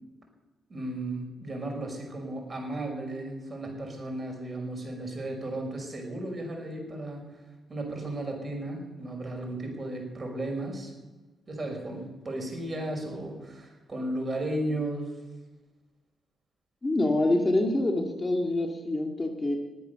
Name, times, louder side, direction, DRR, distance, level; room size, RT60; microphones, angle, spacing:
voice 1, 0.7-7.4 7.7-10.9 11.5-15.1, right 1 dB, 40° right, 2 dB, 5.6 m, -35 dB
voice 2, 16.8-19.6, left 2 dB, 25° left, 3 dB, 2.2 m, -26 dB
20.0 x 8.8 x 6.9 m, 1.2 s
supercardioid pair, 55°, 0 cm